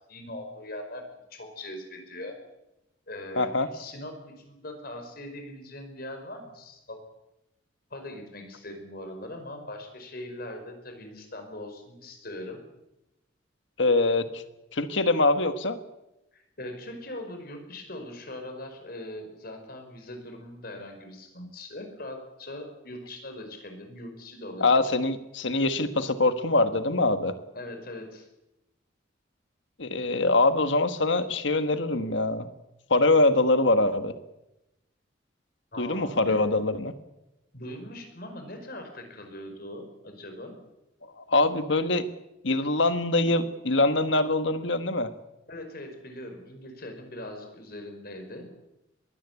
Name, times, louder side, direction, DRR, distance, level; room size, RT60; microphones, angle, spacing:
voice 1, 0.1-2.4 3.1-7.0 7.9-12.6 16.3-24.7 27.5-28.3 35.7-36.4 37.5-40.6 45.5-48.4, left 1 dB, 50° left, 5 dB, 5.2 m, -41 dB
voice 2, 3.4-3.7 13.8-14.4 14.7-15.8 24.6-27.3 29.8-32.5 32.9-34.1 35.8-36.9 41.2-42.0 42.4-45.1, left 2 dB, 70° left, 10 dB, 1.5 m, -23 dB
22.0 x 17.0 x 8.4 m, 0.92 s
head